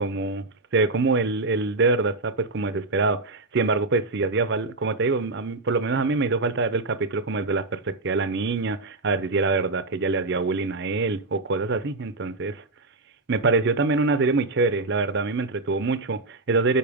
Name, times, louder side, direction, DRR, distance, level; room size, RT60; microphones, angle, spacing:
voice 1, 0.0-12.6 13.3-16.8, right 3 dB, 50° right, 0.6 m, -24 dB
8.6 x 5.6 x 3.5 m
head